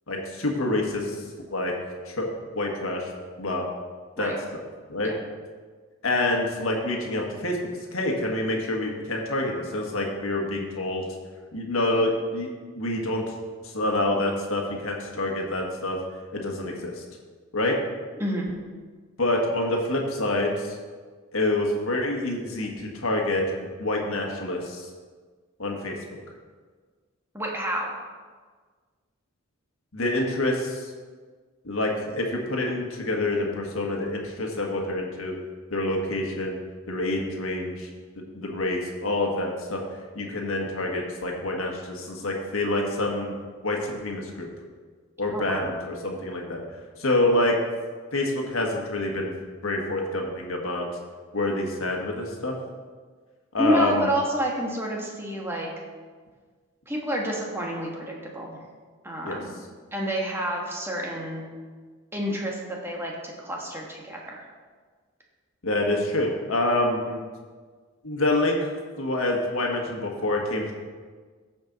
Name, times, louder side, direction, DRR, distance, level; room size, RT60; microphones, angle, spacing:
voice 1, 0.1-1.2 1.5-1.7 2.1-2.3 2.5-3.1 3.4-3.7 4.2-4.6 4.9-5.1 6.0-7.6 7.9-11.1 11.5-12.5 12.7-13.2 13.7-16.0 16.3-17.0 17.5-17.8 19.2-20.7 21.3-23.4 23.8-24.9 25.6-26.2 29.9-30.9 31.6-35.3 35.7-36.6 36.9-37.9 38.3-39.8 40.1-43.3 43.6-44.5 45.2-46.6 47.0-47.6 48.1-49.3 49.6-50.9 51.3-52.5 53.5-54.1 59.2-59.4 65.6-67.2 68.0-68.7 69.0-70.7, left 1 dB, 75° left, 0 dB, 1.6 m, -27 dB
voice 2, 18.2-18.5 27.3-27.9 45.3-45.7 53.6-55.7 56.9-58.6 59.0-59.5 59.9-61.5 62.1-64.4, equal, 10° right, -2 dB, 1.4 m, -29 dB
14.5 x 5.3 x 4.0 m, 1.5 s
head